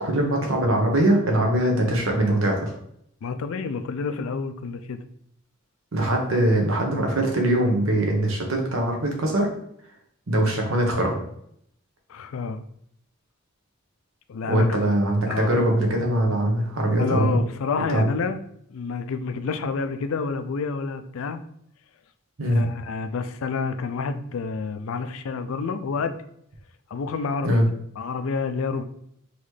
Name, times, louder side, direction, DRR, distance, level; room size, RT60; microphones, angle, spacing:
voice 1, 0.0-2.7 5.9-9.5 10.3-11.2 14.5-17.4 17.9-18.1 22.4-22.7 27.4-27.6, right 1 dB, 70° right, 1 dB, 1.1 m, -22 dB
voice 2, 3.2-5.0 12.1-12.6 14.3-14.9 15.3-15.6 17.0-18.4 18.7-21.4 22.5-26.2 26.9-27.6 28.0-28.8, left 4 dB, 75° left, 9 dB, 0.4 m, -29 dB
4.0 x 3.1 x 3.2 m, 0.70 s
head